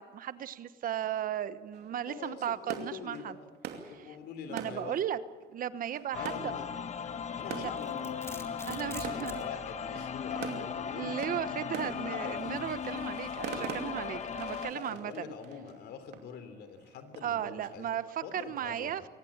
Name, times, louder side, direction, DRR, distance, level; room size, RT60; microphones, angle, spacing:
voice 1, 0.0-3.4 3.8-4.2 4.5-5.2 5.5-6.5 7.5-7.7 8.6-9.5 10.4-15.3 17.2-19.0, right 10 dB, 55° right, 14 dB, 1.1 m, -36 dB
sound 1, 1.7-17.5, right 8 dB, 80° right, 2.6 m, -46 dB
voice 2, 2.1-3.5 3.9-5.0 6.1-6.7 7.4-11.1 12.0-12.5 14.7-17.9 18.2-19.1, left 6 dB, 75° left, 10 dB, 3.3 m, -44 dB
sound 2, 6.1-14.7, left 7 dB, 40° left, 1.2 m, -37 dB
Domestic sounds home sounds, 7.5-9.5, left 2 dB, 15° left, 2.5 m, -45 dB
23.0 x 18.5 x 8.8 m, 1.3 s
cardioid pair, 110°, 17 cm